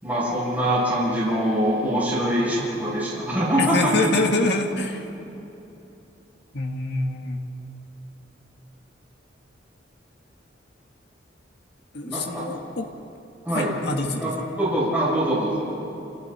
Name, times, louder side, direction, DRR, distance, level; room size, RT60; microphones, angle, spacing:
voice 1, 0.0-4.2 12.0-12.5 13.4-13.8 14.2-15.7, right 1 dB, 10° right, -8 dB, 7.6 m, -24 dB
voice 2, 3.6-5.1 6.5-7.4 11.9-12.9 13.5-14.4, left 2 dB, 65° left, 3 dB, 1.9 m, -25 dB
29.0 x 28.5 x 4.4 m, 2.9 s
head